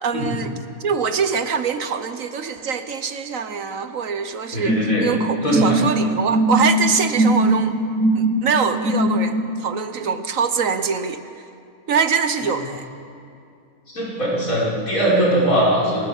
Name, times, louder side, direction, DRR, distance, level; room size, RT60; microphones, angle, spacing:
voice 1, 0.0-0.5 0.8-7.8 8.1-11.2 11.9-12.9, right 6 dB, 65° right, 9 dB, 1.4 m, -24 dB
voice 2, 4.5-5.1 5.4-5.8 12.5-12.6 13.9-16.0, right 1 dB, 65° left, -5 dB, 6.8 m, -20 dB
sound 1, 4.7-9.5, right 1 dB, 90° right, 3.3 m, -20 dB
28.0 x 20.5 x 7.3 m, 2.5 s
omnidirectional pair, 1.6 m